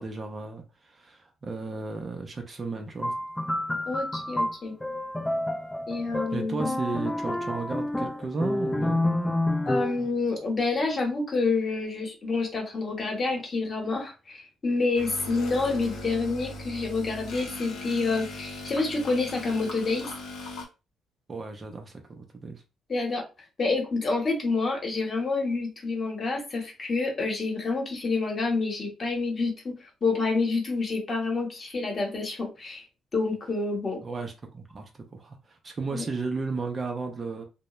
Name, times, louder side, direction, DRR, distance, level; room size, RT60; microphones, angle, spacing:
voice 1, 0.0-3.1 6.3-9.0 21.3-22.6 34.0-37.4, right 3 dB, 35° right, 0.5 m, -34 dB
sound 1, 3.0-10.1, left 1 dB, 15° left, 0.4 m, -29 dB
voice 2, 3.9-4.7 5.9-6.8 9.7-20.1 22.9-23.2 23.6-32.8 33.1-34.0 35.9-36.1, left 3 dB, 40° left, 1.0 m, -28 dB
sound 2, 15.0-20.7, left 2 dB, 85° left, 0.8 m, -39 dB
2.2 x 2.1 x 2.9 m
cardioid pair, 90°, 0 cm